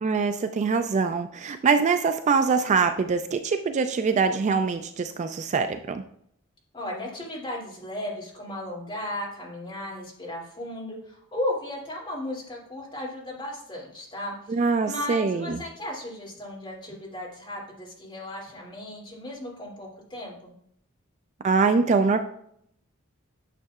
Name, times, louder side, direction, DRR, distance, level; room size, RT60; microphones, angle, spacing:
voice 1, 0.0-6.0 14.5-15.6 21.4-22.2, right 5 dB, 35° right, 8 dB, 0.3 m, -23 dB
voice 2, 6.7-14.6 14.8-20.5, left 1 dB, 25° left, -4 dB, 2.7 m, -35 dB
9.1 x 6.3 x 2.4 m, 0.69 s
head